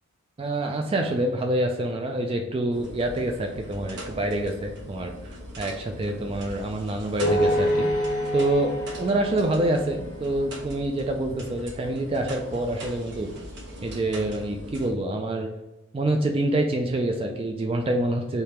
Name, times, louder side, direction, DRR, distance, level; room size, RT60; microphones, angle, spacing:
voice 1, 0.4-5.1 5.6-7.9 8.3-8.7 9.0-13.3 13.8-15.5 15.9-18.4, right 1 dB, 25° right, 3 dB, 0.3 m, -26 dB
sound 1, 2.7-14.9, equal, 50° right, 0.9 m, -40 dB
sound 2, 7.2-10.5, equal, 50° left, 1.3 m, -27 dB
3.5 x 2.8 x 4.3 m, 0.98 s
head